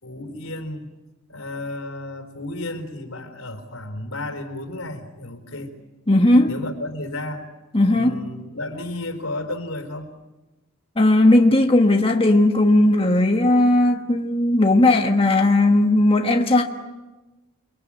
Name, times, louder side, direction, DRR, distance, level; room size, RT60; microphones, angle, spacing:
voice 1, 0.0-0.9 1.3-5.7 6.4-7.5 7.8-10.1, left 2 dB, 85° left, 4.0 m, -33 dB
voice 2, 6.1-6.5 7.7-8.2 11.0-16.6, left 1 dB, 25° left, 1.4 m, -17 dB
30.0 x 22.5 x 8.7 m
head